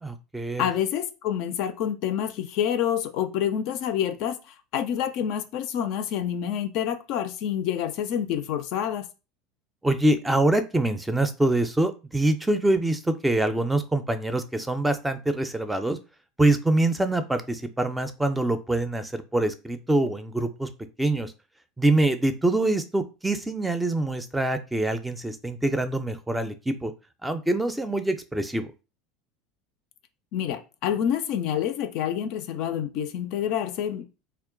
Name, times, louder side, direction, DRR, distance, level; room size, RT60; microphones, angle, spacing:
voice 1, 0.0-0.7 9.8-16.0 16.4-20.7 21.0-21.3 21.8-26.9 27.2-28.7, right 2 dB, 10° right, 0.4 m, -25 dB
voice 2, 0.6-9.1 30.3-34.1, left 9 dB, 60° left, 0.4 m, -28 dB
2.2 x 2.1 x 3.7 m
hypercardioid pair, 80°, 0 cm